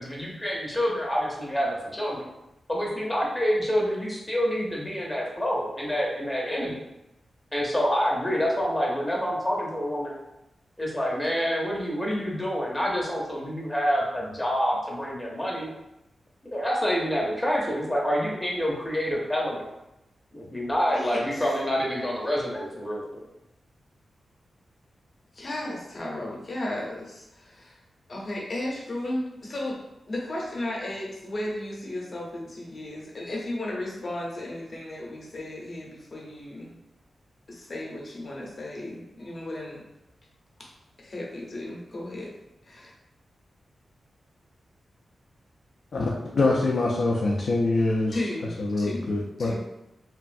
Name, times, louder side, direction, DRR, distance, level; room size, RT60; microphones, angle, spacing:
voice 1, 0.0-2.3 2.7-6.7 7.5-10.1 10.8-15.7 16.5-19.6 20.3-23.2, equal, 15° left, -3 dB, 0.6 m, -27 dB
voice 2, 20.9-21.4 25.3-27.8 28.1-36.8 37.5-39.8 40.6-40.7 41.0-42.3 42.6-42.9 48.1-49.1 49.4-49.5, left 1 dB, 45° left, -3 dB, 0.8 m, -34 dB
voice 3, 45.9-48.2 48.6-49.5, left 2 dB, 65° left, -3 dB, 0.4 m, -24 dB
3.0 x 2.4 x 2.5 m, 0.90 s
wide cardioid pair, 105°, 0 cm